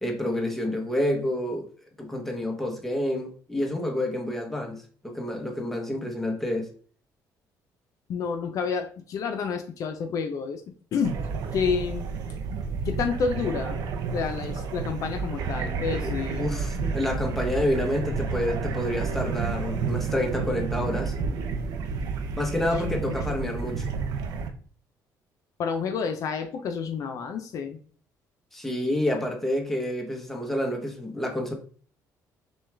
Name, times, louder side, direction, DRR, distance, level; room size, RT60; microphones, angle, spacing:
voice 1, 0.0-1.7 2.0-6.7 16.0-21.2 22.4-23.8 28.5-31.5, left 1 dB, 5° left, 0.9 m, -28 dB
voice 2, 8.1-10.6 10.9-11.2 11.5-12.1 12.8-13.8 14.1-16.9 22.7-23.4 25.6-27.8, left 6 dB, 55° left, 0.5 m, -29 dB
sound 1, 11.0-24.5, right 5 dB, 75° right, 0.7 m, -30 dB
6.2 x 2.3 x 3.2 m
cardioid pair, 140°, 7 cm